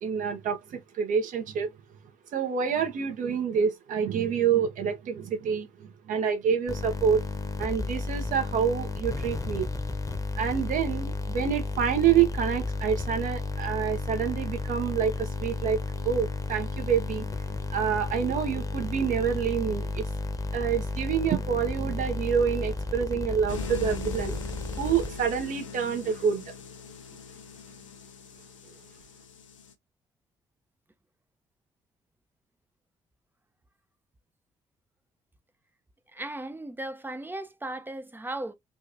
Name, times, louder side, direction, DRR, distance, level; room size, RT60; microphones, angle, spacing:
voice 1, 0.0-1.7 2.3-7.2 7.6-9.7 10.4-17.3 17.7-20.1 20.5-24.4 24.7-26.5, right 7 dB, 55° right, 1.0 m, -27 dB
sound 1, 6.7-25.5, left 3 dB, 20° left, 1.0 m, -33 dB
sound 2, 23.5-29.7, left 6 dB, 85° left, 0.4 m, -42 dB
voice 2, 36.1-38.5, right 1 dB, 10° right, 0.6 m, -36 dB
3.8 x 2.4 x 2.7 m
figure-of-eight pair, 45°, 16 cm